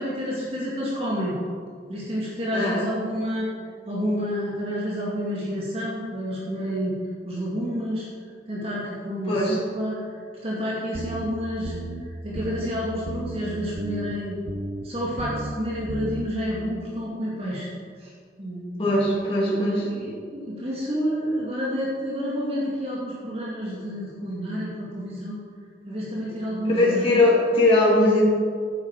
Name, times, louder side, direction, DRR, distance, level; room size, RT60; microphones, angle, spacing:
voice 1, 0.0-1.4 1.9-3.5 3.8-6.9 7.2-8.1 8.5-11.7 12.0-14.4 14.8-17.7 18.0-18.1 18.4-18.7 19.4-25.4 25.8-27.2, equal, 35° right, -6 dB, 2.3 m, -29 dB
voice 2, 2.5-2.9 9.3-9.6 18.8-19.8 26.7-28.3, left 1 dB, 30° left, -6 dB, 3.2 m, -20 dB
sound 1, 10.9-11.3 11.6-12.0 12.4-12.7 13.1-13.4 13.8-14.1 14.5-14.8 15.2-15.5 15.9-16.3, right 2 dB, 55° right, 0.9 m, -33 dB
11.5 x 9.7 x 4.8 m, 2.1 s
head